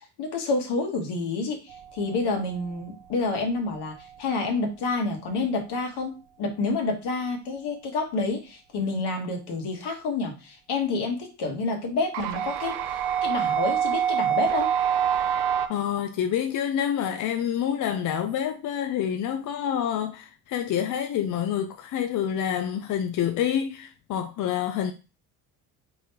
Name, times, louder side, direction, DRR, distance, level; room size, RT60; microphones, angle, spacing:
voice 1, 0.2-6.1 6.4-14.7, left 3 dB, 60° left, 1.3 m, -29 dB
sound 1, 1.7-2.5 12.1-15.7, right 9 dB, 70° right, 0.6 m, -26 dB
voice 2, 15.7-24.9, left 9 dB, 45° left, 0.5 m, -27 dB
3.7 x 2.6 x 2.9 m
hypercardioid pair, 65°, 45 cm